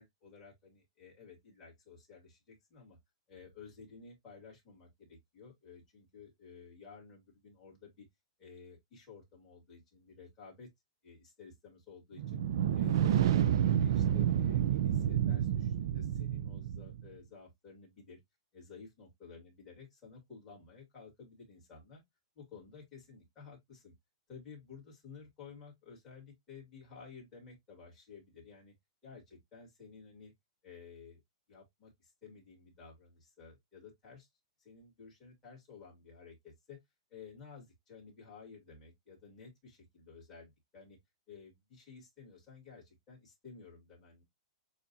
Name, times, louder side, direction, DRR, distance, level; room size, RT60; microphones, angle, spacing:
voice 1, 0.0-3.0 3.3-8.1 8.4-10.7 11.0-12.4 12.7-18.2 18.5-22.0 22.4-23.9 24.3-28.7 29.0-30.3 30.6-31.2 31.5-34.3 34.6-36.8 37.1-41.0 41.3-44.2, left 5 dB, 15° left, 2.1 m, -54 dB
sound 1, 12.2-17.0, right 10 dB, 45° right, 0.4 m, -29 dB
7.0 x 2.5 x 2.7 m
hypercardioid pair, 180°, 3 cm